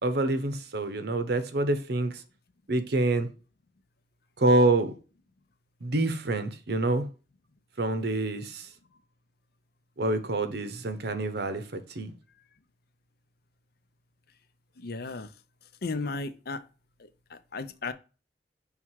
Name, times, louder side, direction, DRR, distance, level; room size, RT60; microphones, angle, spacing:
voice 1, 0.0-2.1 2.7-3.3 4.4-4.9 5.8-7.1 7.8-8.6 10.0-12.1, right 2 dB, 65° right, 0.9 m, -26 dB
voice 2, 14.8-15.3 15.8-16.6 17.0-17.9, left 3 dB, 60° left, 0.6 m, -35 dB
5.8 x 3.6 x 4.5 m
head